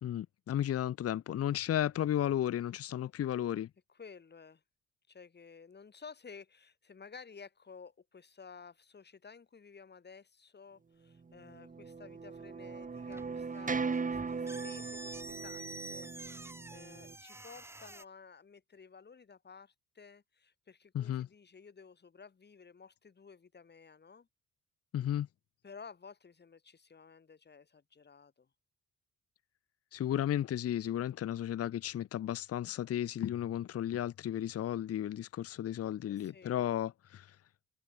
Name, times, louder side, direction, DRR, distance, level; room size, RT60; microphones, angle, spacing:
voice 1, 0.0-3.7 20.9-21.3 24.9-25.3 29.9-37.4, left 11 dB, 50° left, 0.8 m, -34 dB
voice 2, 3.9-4.6 5.1-24.3 25.6-28.5 36.0-36.5, left 5 dB, 35° left, 3.4 m, -54 dB
sound 1, 11.4-17.1, right 5 dB, 25° right, 1.5 m, -39 dB
sound 2, 13.0-18.0, right 2 dB, 10° right, 0.9 m, -48 dB
cardioid pair, 90°, 30 cm